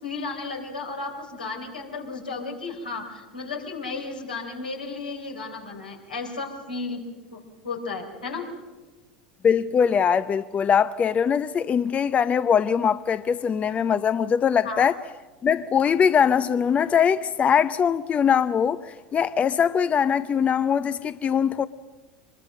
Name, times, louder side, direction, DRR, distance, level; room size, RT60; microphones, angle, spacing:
voice 1, 0.0-7.0 7.3-8.5 14.6-14.9, left 4 dB, 90° left, 3.9 m, -34 dB
voice 2, 9.4-14.9 15.4-21.7, left 7 dB, 30° left, 0.6 m, -22 dB
24.5 x 21.5 x 6.5 m
hypercardioid pair, 80°, 5 cm